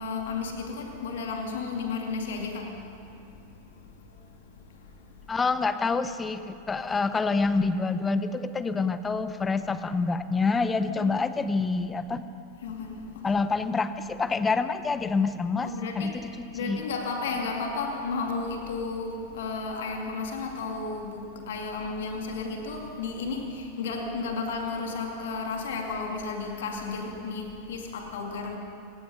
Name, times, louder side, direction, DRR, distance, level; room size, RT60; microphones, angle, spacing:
voice 1, 0.0-2.8 10.8-11.1 12.6-13.3 15.6-16.3 16.5-28.6, left 4 dB, 60° left, 2.4 m, -33 dB
voice 2, 5.3-12.2 13.2-16.8, left 4 dB, 15° left, 0.9 m, -27 dB
26.5 x 18.5 x 5.5 m
figure-of-eight pair, 90°, 0 cm